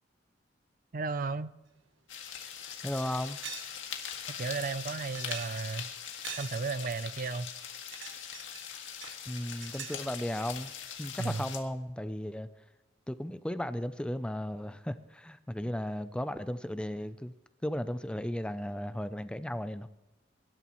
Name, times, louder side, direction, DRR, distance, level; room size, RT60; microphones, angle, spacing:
voice 1, 0.9-1.5 4.4-5.9 6.4-7.5 11.2-11.4, right 4 dB, 45° right, 0.5 m, -34 dB
sound 1, 2.1-11.6, left 8 dB, 90° left, 1.9 m, -42 dB
sound 2, 2.1-2.3 2.7-2.8 3.4-3.8 4.0-4.1 4.7-5.8 6.2-6.9 7.7-8.7 9.0-10.1, right 8 dB, 80° right, 1.1 m, -44 dB
voice 2, 2.8-3.4 9.3-10.7 11.0-12.5 13.1-17.3 17.6-19.9, left 1 dB, 5° left, 0.5 m, -35 dB
24.0 x 12.5 x 3.1 m
head